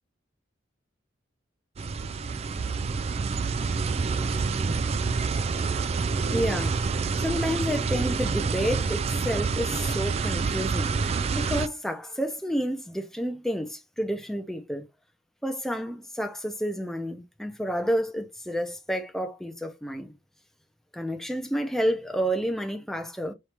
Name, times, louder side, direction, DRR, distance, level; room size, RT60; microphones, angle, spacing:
sound 1, 1.8-11.7, right 4 dB, 30° right, 0.3 m, -27 dB
voice 1, 6.3-6.8 7.2-14.9 15.4-20.1 20.9-23.3, equal, ahead, 0.6 m, -30 dB
4.5 x 2.7 x 3.3 m
head